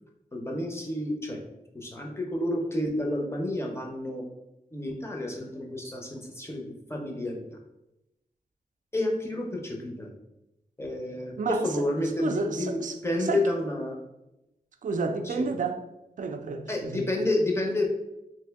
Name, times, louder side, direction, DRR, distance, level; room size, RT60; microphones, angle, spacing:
voice 1, 0.3-1.4 1.7-4.2 4.7-7.4 8.9-10.1 10.8-14.0 15.2-15.5 16.7-17.9, left 1 dB, 15° left, 0.6 m, -30 dB
voice 2, 12.2-13.0 13.3-13.4 14.8-15.8 16.2-17.0, right 4 dB, 55° right, 0.4 m, -30 dB
2.9 x 2.7 x 3.4 m
wide cardioid pair, 115°, 16 cm